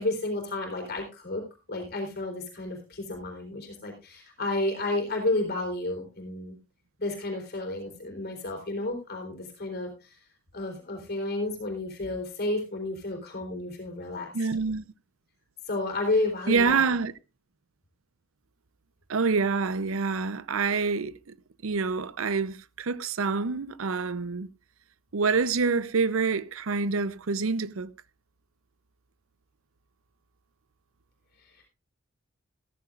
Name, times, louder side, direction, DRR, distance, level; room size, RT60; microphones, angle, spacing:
voice 1, 0.0-6.6 7.0-10.2 10.5-14.3 15.7-16.9, left 2 dB, 50° left, 3.9 m, -31 dB
voice 2, 14.3-14.9 16.5-17.1 19.1-21.4 21.6-24.5 25.1-27.9, right 4 dB, 85° right, 0.7 m, -27 dB
14.5 x 14.0 x 2.5 m
head